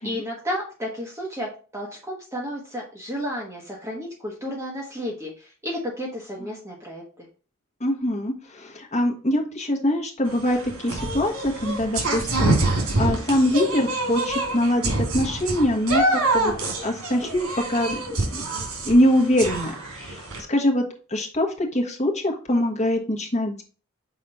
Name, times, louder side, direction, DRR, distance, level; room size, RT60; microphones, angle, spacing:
voice 1, 0.0-7.3, equal, 15° right, -2 dB, 1.2 m, -32 dB
voice 2, 7.8-16.5 16.8-18.4 18.8-20.8 21.1-23.6, left 1 dB, 30° left, 1 dB, 1.3 m, -23 dB
sound 1, 10.3-20.4, right 2 dB, 90° right, 2.6 m, -26 dB
5.9 x 4.2 x 5.4 m, 0.38 s
head